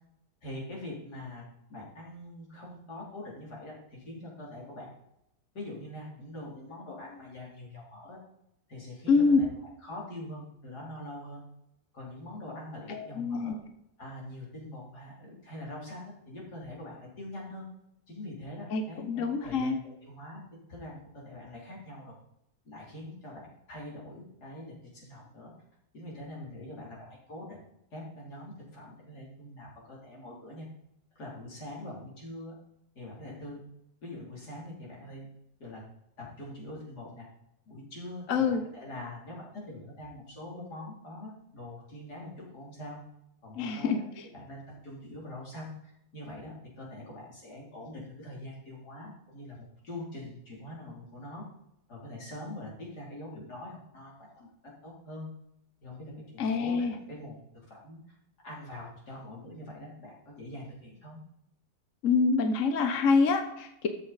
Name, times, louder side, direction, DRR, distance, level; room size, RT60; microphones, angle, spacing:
voice 1, 0.4-1.4 1.7-4.9 5.5-8.2 8.7-11.4 11.9-13.6 14.0-17.7 18.1-20.4 20.7-22.2 22.6-25.5 25.9-30.7 31.2-32.5 33.0-33.6 34.0-35.3 35.6-35.8 36.2-37.3 37.7-43.0 43.4-44.1 44.3-51.4 51.9-54.5 54.8-55.3 55.8-58.2 58.4-61.2, left 1 dB, 80° left, -4 dB, 3.8 m, -43 dB
voice 2, 9.1-9.4 12.9-13.5 18.7-19.8 38.3-38.6 43.6-44.0 56.4-56.9 62.0-63.9, left 4 dB, 60° left, 6 dB, 1.2 m, -26 dB
13.0 x 7.3 x 4.0 m, 0.82 s
omnidirectional pair, 1.7 m